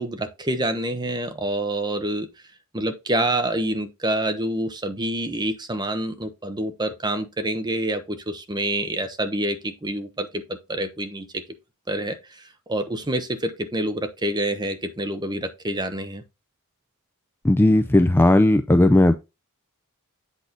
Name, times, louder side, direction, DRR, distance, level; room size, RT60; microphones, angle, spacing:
voice 1, 0.0-2.3 2.7-11.4 11.9-12.4 12.7-16.2, right 1 dB, 20° right, 0.9 m, -27 dB
voice 2, 17.4-19.1, left 1 dB, 10° left, 0.3 m, -16 dB
8.3 x 4.1 x 3.9 m
head